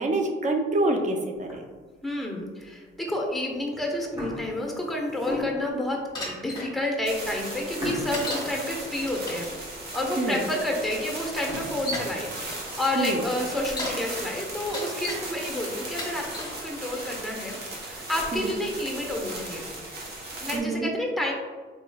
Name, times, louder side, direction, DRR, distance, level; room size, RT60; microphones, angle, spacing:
voice 1, 0.0-1.6 10.2-10.4 13.0-13.2 18.3-18.5 20.5-20.9, right 2 dB, 40° right, 3 dB, 0.6 m, -26 dB
sound 1, 1.4-1.9 2.5-2.6 3.4-3.7 3.9-5.8 6.4-6.5 6.9-7.0 7.8-9.6 10.0-10.1 10.6-10.7 11.3-12.9 13.4-13.5 13.9-14.0 14.3-14.4 14.7-14.8 15.7-16.3, left 2 dB, 15° right, 1.1 m, -37 dB
voice 2, 2.0-6.0 6.3-9.5 9.9-19.7 20.4-21.3, left 1 dB, ahead, 0 dB, 0.8 m, -30 dB
Bicycle, 6.1-6.7 8.1-8.5 9.0-9.5 10.6-10.7 11.5-12.2 13.5-14.0 14.5-15.2 15.8-16.6 17.2-17.6, left 1 dB, 20° left, 1.3 m, -34 dB
sound 2, 7.1-20.6, right 2 dB, 55° right, 1.1 m, -37 dB
4.4 x 3.0 x 2.3 m, 1.4 s
cardioid pair, 90°, 20 cm